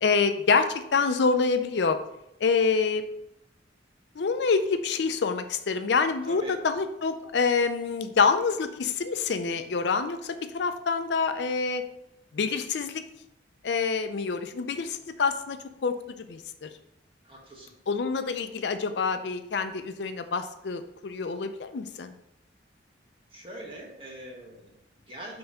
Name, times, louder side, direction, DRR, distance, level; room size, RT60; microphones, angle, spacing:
voice 1, 0.0-2.0 2.4-3.0 4.2-11.8 12.3-13.0 13.6-16.7 17.9-22.1, left 5 dB, 70° left, 8 dB, 0.5 m, -26 dB
voice 2, 6.3-6.6 17.2-17.7 23.3-25.4, right 1 dB, 30° right, -2 dB, 1.5 m, -43 dB
5.3 x 3.4 x 5.4 m, 0.82 s
head